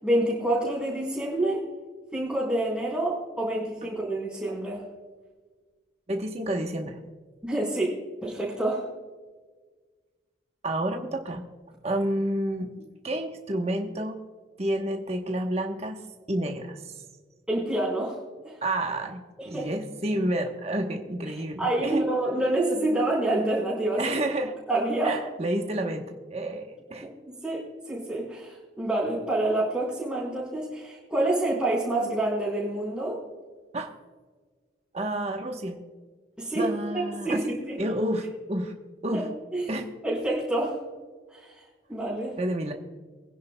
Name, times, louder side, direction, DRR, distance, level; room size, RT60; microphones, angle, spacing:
voice 1, 0.0-1.6 2.1-4.8 7.4-8.0 8.2-8.9 17.5-18.2 18.4-18.6 19.4-19.7 21.3-24.1 24.7-25.2 27.0-33.2 36.4-37.8 39.1-39.3 39.5-39.7 40.0-40.8 41.3-42.4, right 1 dB, 5° right, -10 dB, 3.9 m, -28 dB
voice 2, 6.1-7.0 10.6-11.4 11.8-12.7 13.0-14.2 14.6-16.0 16.3-16.9 18.6-22.0 24.0-24.5 25.0-27.1 33.7-33.9 34.9-35.8 36.5-37.5 37.8-38.7 39.0-39.3 39.7-39.9 42.4-42.7, right 1 dB, 35° right, 3 dB, 1.0 m, -29 dB
23.5 x 10.5 x 2.2 m, 1.4 s
head